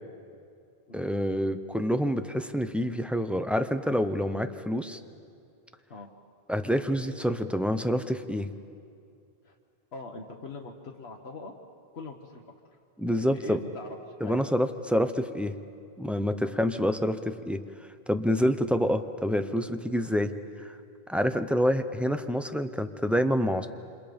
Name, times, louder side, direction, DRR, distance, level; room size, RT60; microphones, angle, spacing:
voice 1, 0.9-5.0 6.5-8.5 13.0-13.6 14.2-15.5 16.0-17.6 18.1-20.3 20.6-20.8 21.1-23.7, equal, ahead, 8 dB, 0.7 m, -27 dB
voice 2, 9.9-11.5 11.9-12.8 13.3-14.6 16.4-16.6, left 3 dB, 80° left, 1 dB, 1.5 m, -42 dB
29.0 x 26.5 x 5.3 m, 2.4 s
omnidirectional pair, 1.0 m